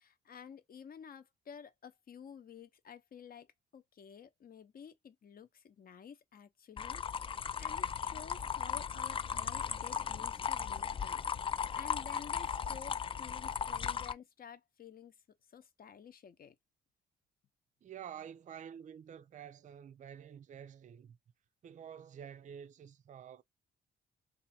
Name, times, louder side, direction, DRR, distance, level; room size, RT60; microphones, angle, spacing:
voice 1, 0.0-3.5 3.7-11.5 11.7-15.1 15.5-16.5, left 7 dB, 45° left, 0.8 m, -52 dB
sound 1, 6.8-14.1, left 7 dB, 25° left, 0.3 m, -37 dB
voice 2, 17.8-21.2 21.6-23.4, right 8 dB, 40° right, 0.4 m, -49 dB
2.6 x 2.6 x 4.3 m
cardioid pair, 90°, 20 cm